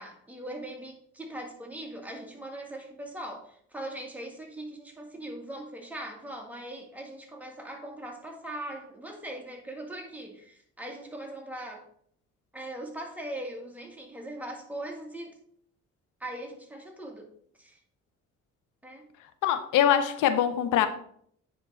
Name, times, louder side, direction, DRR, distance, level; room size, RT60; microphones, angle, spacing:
voice 1, 0.0-11.9 12.5-15.3 16.2-17.3 17.6-17.8 18.8-19.1, right 1 dB, 5° right, 1 dB, 1.8 m, -40 dB
voice 2, 19.4-20.9, left 10 dB, 85° left, 10 dB, 0.7 m, -23 dB
9.4 x 3.7 x 4.3 m, 0.63 s
cardioid pair, 90°, 30 cm